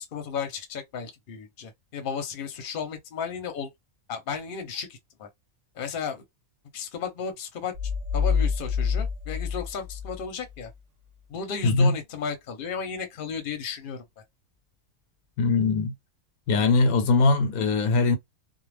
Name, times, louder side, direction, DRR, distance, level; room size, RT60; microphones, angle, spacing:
voice 1, 0.0-3.7 4.1-5.3 5.8-6.2 6.7-7.7 8.1-10.7 11.3-14.0, left 6 dB, 45° left, 0.8 m, -34 dB
sound 1, 7.7-10.7, left 6 dB, 60° right, 0.4 m, -27 dB
voice 2, 11.6-11.9 15.4-15.9 16.5-18.2, left 3 dB, 90° left, 1.1 m, -21 dB
2.3 x 2.1 x 3.2 m
omnidirectional pair, 1.5 m